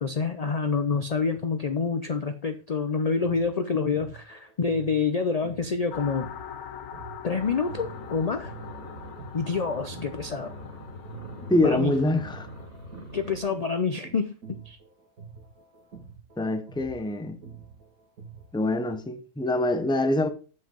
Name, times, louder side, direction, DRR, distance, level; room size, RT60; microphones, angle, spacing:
voice 1, 0.0-6.3 7.2-8.5 9.3-10.5 11.6-11.9 13.1-14.3 14.7-14.8, left 5 dB, 60° left, 0.4 m, -27 dB
sound 1, 3.0-10.7 11.0-18.7, right 6 dB, 85° right, 2.5 m, -47 dB
sound 2, 5.9-12.7, left 9 dB, 90° left, 1.3 m, -43 dB
sound 3, 7.3-13.4, equal, 40° right, 2.8 m, -43 dB
voice 2, 11.5-12.5 16.4-17.4 18.5-20.3, left 1 dB, 5° left, 0.5 m, -25 dB
7.7 x 5.8 x 5.1 m
omnidirectional pair, 1.5 m